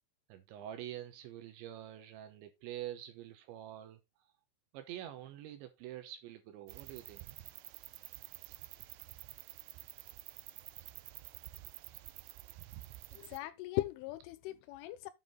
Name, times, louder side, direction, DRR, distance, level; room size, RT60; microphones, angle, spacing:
voice 1, 0.3-4.0 4.7-7.3, right 12 dB, 75° right, 3.0 m, -46 dB
sound 1, 6.7-13.4, right 17 dB, 90° right, 2.4 m, -50 dB
voice 2, 13.1-15.1, left 17 dB, 85° left, 3.1 m, -39 dB
9.2 x 5.8 x 3.8 m
omnidirectional pair, 5.8 m